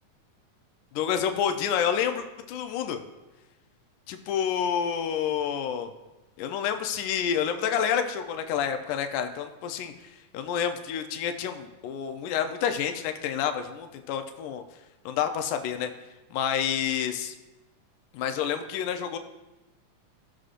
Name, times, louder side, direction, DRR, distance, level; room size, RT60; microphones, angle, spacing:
voice 1, 0.9-3.0 4.1-5.9 6.4-9.9 10.3-14.6 15.1-15.9 16.3-17.3 18.1-19.2, left 8 dB, 90° left, 7 dB, 2.2 m, -28 dB
17.0 x 6.3 x 2.5 m, 1.1 s
omnidirectional pair, 3.5 m